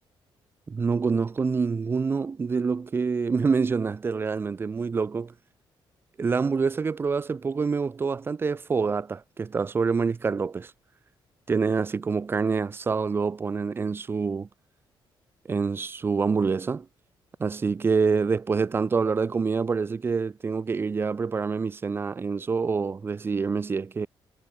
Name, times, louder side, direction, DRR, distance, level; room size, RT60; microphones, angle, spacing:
voice 1, 0.7-5.3 6.2-10.7 11.5-14.5 15.5-16.9 17.4-24.1, right 5 dB, 25° right, 3.0 m, -26 dB
cardioid pair, 175°, 9 cm